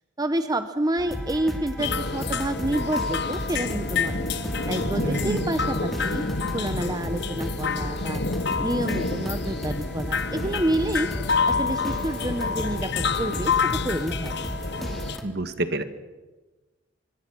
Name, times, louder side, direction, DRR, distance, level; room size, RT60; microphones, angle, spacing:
voice 1, 0.2-4.2 4.7-6.2 6.5-8.2 8.6-11.1 11.5-14.4, right 1 dB, 20° right, 9 dB, 0.9 m, -28 dB
sound 1, 1.0-15.2, equal, ahead, 3.1 m, -34 dB
sound 2, 1.8-15.2, left 4 dB, 60° left, 1.1 m, -28 dB
voice 2, 5.0-5.4 15.2-15.8, right 2 dB, 55° right, 10 dB, 1.7 m, -28 dB
26.0 x 22.5 x 6.2 m, 1.2 s
head